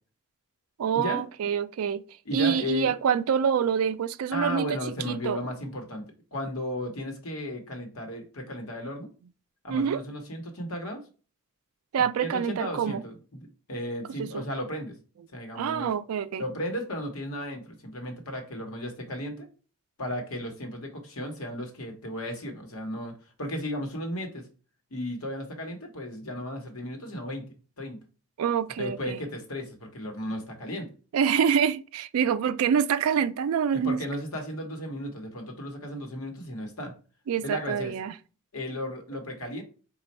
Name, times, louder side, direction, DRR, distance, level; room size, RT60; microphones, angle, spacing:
voice 1, 0.8-2.0 2.3-4.8 5.1-5.4 9.7-10.0 11.9-13.0 14.2-14.4 15.6-16.4 28.4-29.2 31.1-34.0 37.3-38.1, right 7 dB, 85° right, 0.3 m, -26 dB
voice 2, 2.2-2.9 4.3-9.1 9.6-11.0 12.0-14.9 15.3-15.9 16.4-19.5 20.0-24.4 24.9-27.5 27.8-28.0 28.8-30.9 33.7-36.9 37.4-37.9 38.5-39.6, left 1 dB, 90° left, 1.0 m, -35 dB
4.2 x 2.3 x 4.1 m
head